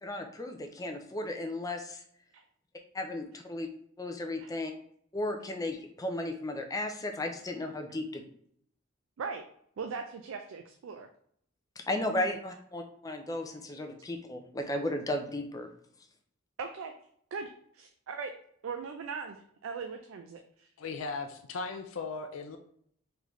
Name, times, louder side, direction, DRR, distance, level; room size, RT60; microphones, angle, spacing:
voice 1, 0.0-2.0 2.9-3.7 4.0-4.7 5.1-8.2 11.8-15.7, left 1 dB, 20° left, 4 dB, 0.5 m, -35 dB
voice 2, 9.8-11.1 16.6-16.9 17.3-18.3 18.6-20.7, right 5 dB, 75° right, 5 dB, 0.4 m, -39 dB
voice 3, 20.8-22.6, left 4 dB, 75° left, 5 dB, 0.4 m, -37 dB
3.8 x 3.3 x 3.1 m, 0.65 s
head